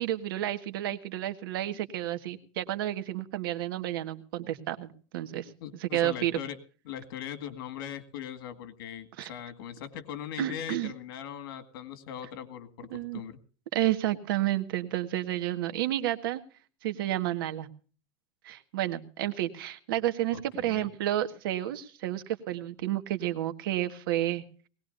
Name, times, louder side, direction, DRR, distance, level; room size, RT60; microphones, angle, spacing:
voice 1, 0.0-5.5 5.8-6.4 9.2-9.3 10.4-10.9 12.9-13.2 13.7-16.4 16.8-17.7 18.4-24.4, right 13 dB, 85° right, 9 dB, 1.7 m, -31 dB
voice 2, 5.6-6.6 6.9-13.4 20.3-20.9, left 9 dB, 85° left, 10 dB, 2.1 m, -40 dB
20.5 x 18.5 x 2.6 m, 0.39 s
supercardioid pair, 165°, 12 cm